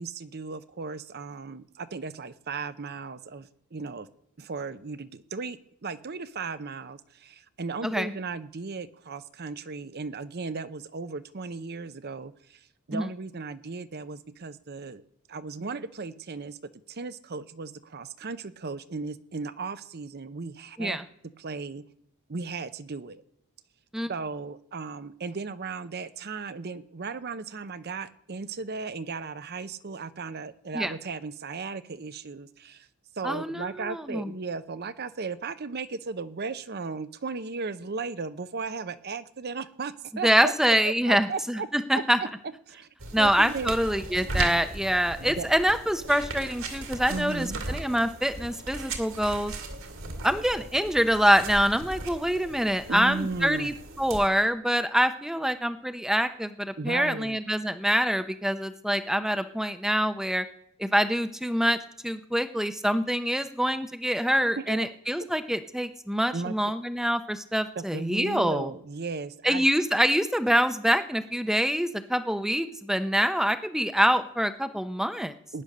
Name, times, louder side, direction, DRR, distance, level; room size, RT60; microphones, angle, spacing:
voice 1, 0.0-4.1 4.4-12.6 12.9-15.0 15.3-16.6 16.9-21.0 21.4-21.8 22.3-23.2 24.1-32.9 33.2-40.5 40.8-41.7 41.9-42.3 42.7-42.9 43.2-43.7 45.2-45.5 47.1-47.6 52.9-53.7 56.8-57.4 64.6-64.9 66.3-66.5 67.8-69.7 75.5-75.6, right 4 dB, 45° right, 12 dB, 0.7 m, -36 dB
voice 2, 7.8-8.1 12.9-13.1 20.8-21.0 23.9-24.1 30.7-30.9 33.2-34.3 40.2-42.2 43.1-49.5 50.2-60.4 60.8-61.8 62.0-68.7 69.4-75.3, equal, ahead, 10 dB, 0.7 m, -25 dB
sound 1, 43.0-54.3, right 2 dB, 65° right, 2.2 m, -37 dB
18.5 x 10.0 x 6.6 m, 0.74 s
head